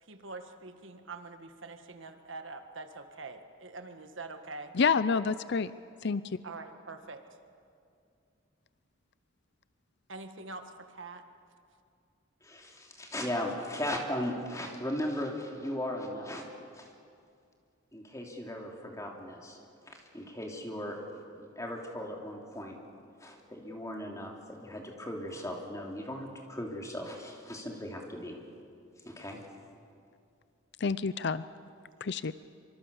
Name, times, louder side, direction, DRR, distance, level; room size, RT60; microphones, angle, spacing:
voice 1, 0.0-4.7 6.4-7.2 10.1-11.2, right 3 dB, 65° right, 7 dB, 1.7 m, -44 dB
voice 2, 4.8-5.7 6.0-6.2 30.8-31.4 32.0-32.3, left 5 dB, 55° left, 15 dB, 0.5 m, -28 dB
voice 3, 12.4-16.4 16.7-16.9 17.9-19.6 19.8-21.0 21.3-22.8 23.2-28.4 29.0-29.4, left 1 dB, 15° left, 0 dB, 3.1 m, -37 dB
25.0 x 25.0 x 7.1 m, 2.4 s
head